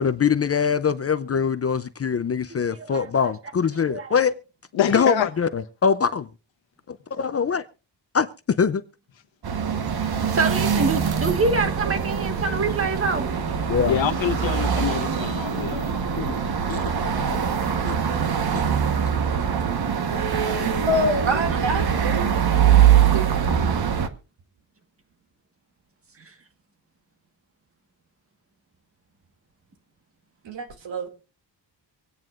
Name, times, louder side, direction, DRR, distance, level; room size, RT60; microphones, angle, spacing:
voice 1, 0.0-4.3 4.9-6.3 6.9-7.7 8.1-8.3 8.6-8.8 13.7-14.0 15.5-15.8 16.2-16.4 16.7-16.9 17.8-18.0 18.5-18.6, left 6 dB, 35° left, 0.5 m, -23 dB
voice 2, 2.7-3.1 3.9-4.2 9.9-13.3 21.5-22.4 26.2-26.3, right 3 dB, 30° right, 1.5 m, -27 dB
voice 3, 4.7-5.3 13.8-16.0, left 9 dB, 80° left, 1.4 m, -26 dB
sound 1, 9.4-24.1, right 8 dB, 55° right, 1.2 m, -23 dB
voice 4, 20.6-22.2 23.1-23.3 30.4-31.1, equal, 75° right, 2.5 m, -26 dB
25.0 x 9.2 x 2.5 m
wide cardioid pair, 145°, 45 cm